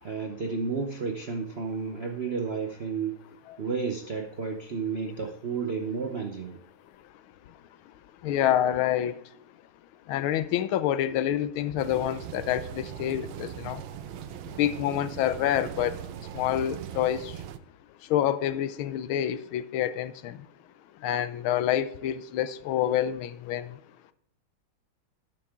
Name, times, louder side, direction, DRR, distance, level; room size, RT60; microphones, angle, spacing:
voice 1, 0.0-3.2 3.6-6.6, right 5 dB, 60° right, 4 dB, 0.6 m, -32 dB
voice 2, 8.2-9.1 10.1-13.8 14.6-15.9 16.3-17.3 18.1-20.4 21.0-23.7, left 11 dB, 80° left, 14 dB, 1.5 m, -27 dB
sound 1, 11.8-17.6, right 10 dB, 80° right, 1.4 m, -40 dB
12.5 x 8.4 x 3.6 m, 0.70 s
omnidirectional pair, 2.2 m